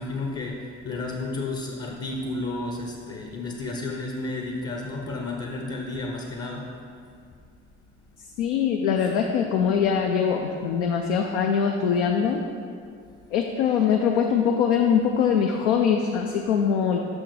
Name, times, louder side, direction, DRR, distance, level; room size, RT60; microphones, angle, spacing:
voice 1, 0.0-6.6, left 2 dB, 40° left, 0 dB, 0.8 m, -32 dB
voice 2, 8.4-12.4 13.3-17.0, left 7 dB, 75° left, 2 dB, 0.5 m, -22 dB
6.2 x 5.9 x 3.2 m, 2.3 s
figure-of-eight pair, 45°, 36 cm